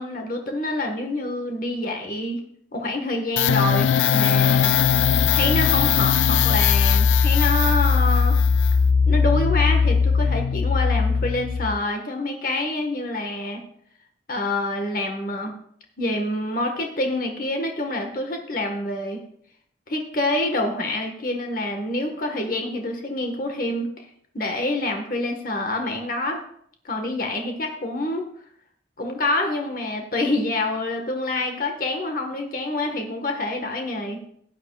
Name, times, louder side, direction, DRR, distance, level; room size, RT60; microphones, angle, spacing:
voice 1, 0.0-2.4 2.7-4.8 5.3-8.4 9.1-13.6 14.3-15.6 16.0-19.2 19.9-24.0 24.3-26.4 26.8-28.3 29.0-34.2, left 2 dB, 50° left, 3 dB, 1.5 m, -27 dB
sound 1, 3.4-11.8, left 6 dB, 90° left, 0.4 m, -19 dB
15.5 x 9.8 x 2.4 m, 0.64 s
head